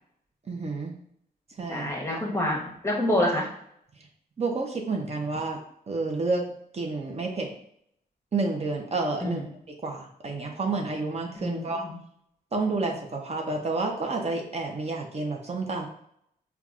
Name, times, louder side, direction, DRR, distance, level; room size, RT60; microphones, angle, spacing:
voice 1, 0.5-0.9 1.6-1.9 4.4-5.6 5.9-6.5 6.7-7.5 8.3-9.4 9.8-11.8 12.5-15.9, right 3 dB, 40° right, 1 dB, 0.6 m, -29 dB
voice 2, 1.7-3.5 9.2-9.4 11.4-12.0, left 1 dB, 15° left, -1 dB, 1.0 m, -27 dB
5.5 x 2.3 x 2.4 m, 0.71 s
wide cardioid pair, 120°, 17 cm